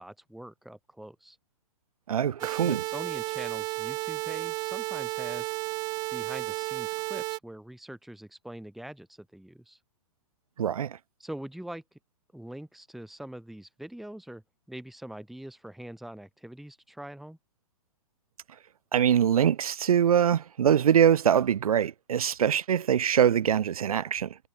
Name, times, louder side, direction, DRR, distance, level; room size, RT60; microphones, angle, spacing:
voice 1, 0.0-1.4 2.4-5.5 6.1-9.8 11.2-11.8 12.3-14.4 14.7-17.4, right 1 dB, ahead, 1.7 m, -43 dB
voice 2, 2.1-2.8 10.6-11.0 18.9-24.4, right 9 dB, 80° right, 0.9 m, -23 dB
sound 1, 2.4-7.4, right 23 dB, 20° right, 0.5 m, -33 dB
hypercardioid pair, 150°, 18 cm